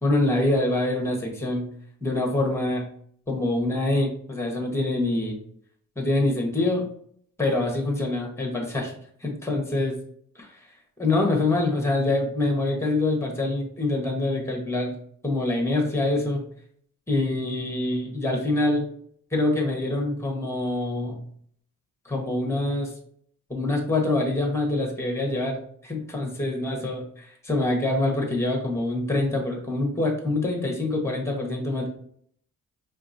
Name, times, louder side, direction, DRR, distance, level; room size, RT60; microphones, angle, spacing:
voice 1, 0.0-1.7 2.0-2.9 3.3-5.4 6.0-6.9 7.4-8.9 9.2-9.9 10.3-10.5 11.0-14.9 15.2-16.4 17.1-18.9 19.3-21.2 22.0-22.9 23.5-31.9, left 2 dB, 10° left, 1 dB, 1.3 m, -25 dB
4.5 x 3.2 x 2.7 m, 0.63 s
cardioid pair, 70°, 35 cm